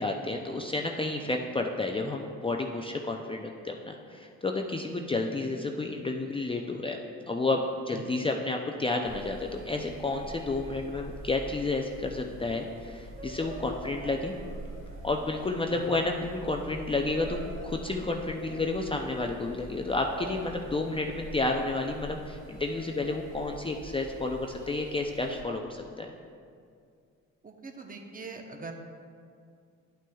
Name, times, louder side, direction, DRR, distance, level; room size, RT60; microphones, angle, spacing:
voice 1, 0.0-7.0 7.3-14.3 15.0-26.1, left 2 dB, 20° left, 2 dB, 0.4 m, -31 dB
sound 1, 9.0-25.4, right 1 dB, 45° right, 1.5 m, -44 dB
voice 2, 27.4-28.7, right 3 dB, 30° right, 3 dB, 0.8 m, -42 dB
11.0 x 6.1 x 2.3 m, 2.3 s
cardioid pair, 90°, 30 cm